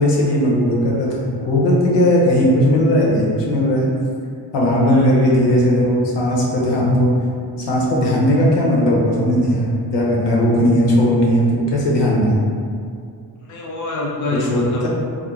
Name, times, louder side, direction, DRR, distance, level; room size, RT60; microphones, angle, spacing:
voice 1, 0.0-3.9 4.5-7.1 7.7-12.4 14.5-14.9, equal, 75° left, -4 dB, 0.7 m, -17 dB
voice 2, 4.7-5.4 13.4-14.9, left 2 dB, 45° left, -3 dB, 0.4 m, -26 dB
2.4 x 2.1 x 3.0 m, 2.3 s
cardioid pair, 100°, 42 cm